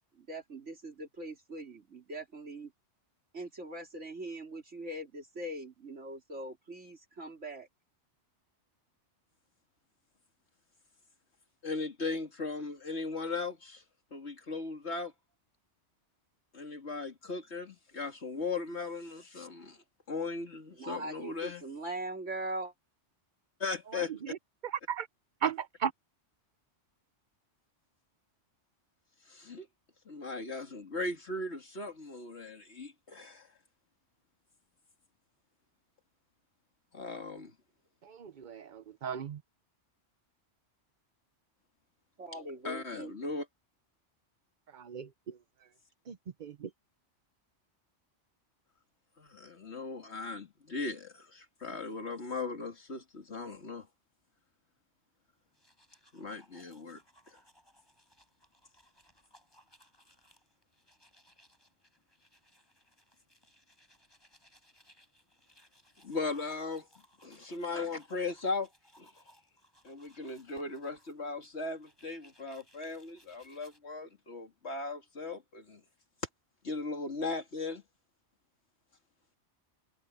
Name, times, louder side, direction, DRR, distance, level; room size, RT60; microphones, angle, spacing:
voice 1, 0.2-2.7 3.3-7.7 20.8-22.7 42.2-43.2, right 1 dB, 80° right, 3.9 m, -41 dB
voice 2, 11.6-13.8 14.1-15.1 16.5-21.6 23.6-24.3 29.3-29.7 30.1-33.5 36.9-37.5 42.6-43.5 49.2-53.9 56.1-57.0 66.0-66.9 67.2-68.7 69.0-69.1 69.8-75.8 76.6-77.8, left 3 dB, 65° left, 2.8 m, -38 dB
voice 3, 24.6-25.1 25.4-25.9 38.1-39.4 44.7-45.1 46.1-46.2 46.4-46.7, right 8 dB, 45° right, 0.8 m, -35 dB
sound 1, 55.4-73.8, equal, 20° left, 8.2 m, -65 dB
omnidirectional pair, 1.2 m